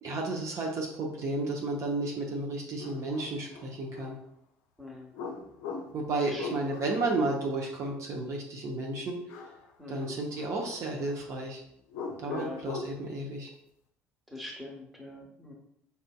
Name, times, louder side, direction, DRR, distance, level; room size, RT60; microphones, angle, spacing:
voice 1, 0.0-4.2 5.9-9.2 9.9-11.6 12.2-13.5, right 2 dB, 45° right, 0 dB, 0.7 m, -32 dB
sound 1, 2.1-2.2 2.8-4.2 5.1-7.1 9.3-9.7 10.0-11.2 11.9-13.0, left 4 dB, 55° left, 0.5 m, -41 dB
voice 2, 4.8-5.1 6.2-6.7 9.8-10.1 12.3-12.6 14.3-15.5, left 2 dB, ahead, -1 dB, 1.1 m, -43 dB
5.5 x 2.5 x 2.3 m, 0.72 s
figure-of-eight pair, 55°, 7 cm